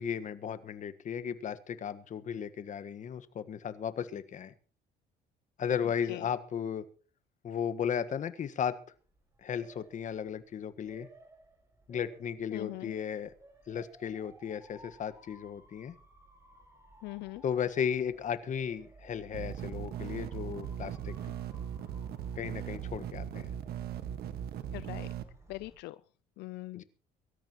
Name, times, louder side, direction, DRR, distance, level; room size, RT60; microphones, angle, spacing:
voice 1, 0.0-4.5 5.6-6.9 7.4-8.8 9.4-11.1 11.9-13.3 13.7-15.9 17.4-21.1 22.3-23.5 26.7-26.8, left 8 dB, 45° left, 12 dB, 1.5 m, -35 dB
voice 2, 5.8-6.3 12.5-12.9 17.0-17.4 24.7-25.1 25.5-26.0 26.4-26.8, left 19 dB, 80° left, 15 dB, 0.6 m, -41 dB
Motor vehicle (road) / Siren, 8.9-25.8, right 2 dB, 15° right, 6.9 m, -56 dB
sound 1, 19.3-25.2, right 9 dB, 70° right, 1.7 m, -39 dB
23.0 x 13.5 x 3.1 m, 0.38 s
cardioid pair, 110°, 17 cm